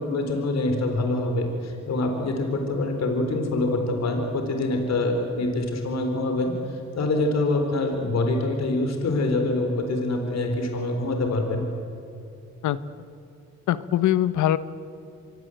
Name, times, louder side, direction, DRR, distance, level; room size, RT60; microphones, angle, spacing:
voice 1, 0.0-11.6, left 2 dB, 60° left, 4 dB, 4.2 m, -25 dB
voice 2, 13.7-14.6, left 12 dB, 75° left, 14 dB, 1.1 m, -22 dB
26.0 x 23.0 x 7.9 m, 2.8 s
cardioid pair, 90°, 30 cm